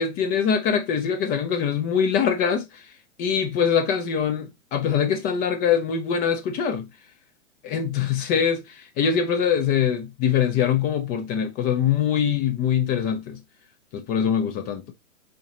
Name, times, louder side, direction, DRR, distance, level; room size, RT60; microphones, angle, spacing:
voice 1, 0.0-2.9 3.2-6.9 7.6-13.4 13.9-14.9, left 7 dB, 20° left, 0.5 m, -23 dB
4.3 x 3.9 x 2.7 m
hypercardioid pair, 115°, 41 cm